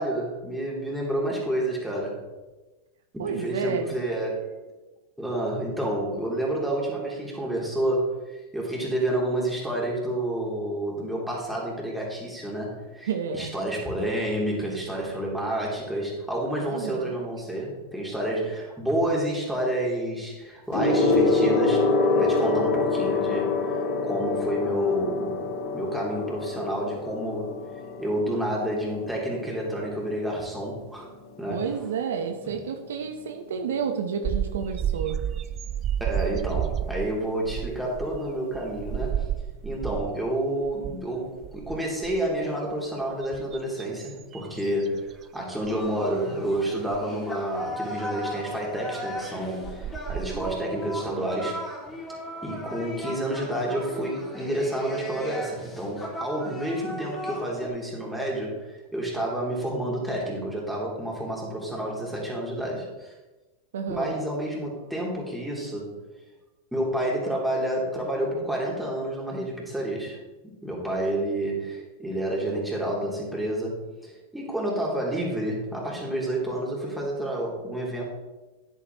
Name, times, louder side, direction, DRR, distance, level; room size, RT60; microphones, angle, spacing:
voice 1, 0.0-2.3 3.1-4.5 5.2-23.8 24.0-27.6 28.0-31.1 31.4-31.8 32.4-32.6 36.0-51.7 52.4-63.1 63.9-66.1 66.7-78.0, right 1 dB, 5° right, -4 dB, 3.0 m, -29 dB
voice 2, 3.2-4.0 13.1-13.5 16.6-17.2 31.5-35.2 63.7-64.1, right 6 dB, 75° right, 6 dB, 0.8 m, -30 dB
Gong, 20.7-30.5 31.4-31.7, left 3 dB, 55° left, 3.2 m, -26 dB
Beethoven Bird, 34.2-40.3 40.6-41.0 41.4-42.4 43.0-45.2 45.6-45.9 46.9-47.0 49.2-49.3 49.6-50.5, right 10 dB, 35° right, 0.3 m, -31 dB
sound 1, 45.6-57.7, equal, 10° left, 2.6 m, -37 dB
9.7 x 8.5 x 3.0 m, 1.1 s
hypercardioid pair, 105°, 0 cm